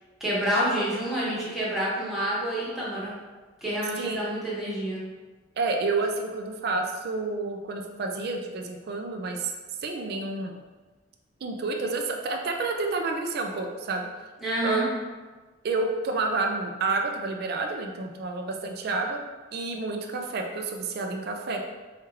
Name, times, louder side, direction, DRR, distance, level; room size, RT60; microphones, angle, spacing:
voice 1, 0.2-3.1 3.6-5.0 14.4-14.9, right 1 dB, ahead, -9 dB, 1.0 m, -28 dB
voice 2, 5.6-9.5 9.8-10.6 11.4-14.1 14.6-14.9 15.6-19.2 19.5-21.6, right 3 dB, 55° right, 3 dB, 0.4 m, -29 dB
4.4 x 2.4 x 3.1 m, 1.3 s
head